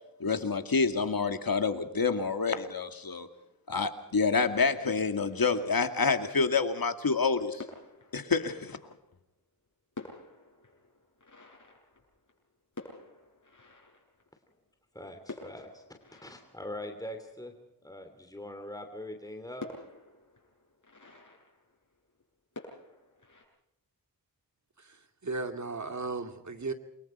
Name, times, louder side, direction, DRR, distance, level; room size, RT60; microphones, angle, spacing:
voice 1, 0.2-3.3 3.7-7.6 8.1-8.8, left 4 dB, 70° left, 8 dB, 2.4 m, -28 dB
sound 1, 4.6-6.5 7.2-7.3 7.6-9.3 9.6-9.7 9.9-14.7 15.2-17.9 18.4-18.5 18.8-18.9 19.6-22.2 22.5-23.4, left 3 dB, 55° left, 7.7 m, -49 dB
voice 2, 14.9-15.8 16.1-17.5 17.8-19.7, left 1 dB, 10° left, 5 dB, 3.0 m, -42 dB
voice 3, 24.8-26.7, right 3 dB, 50° right, 7 dB, 2.5 m, -36 dB
29.0 x 24.0 x 4.5 m, 0.83 s
wide cardioid pair, 90°, 37 cm